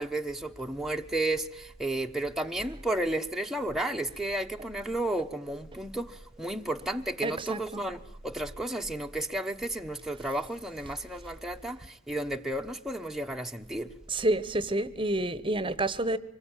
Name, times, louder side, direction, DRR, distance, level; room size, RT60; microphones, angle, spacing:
voice 1, 0.0-13.9, right 1 dB, ahead, 1.1 m, -33 dB
voice 2, 7.2-7.8 14.1-16.2, right 2 dB, 25° right, 1.1 m, -29 dB
25.0 x 21.0 x 9.1 m
head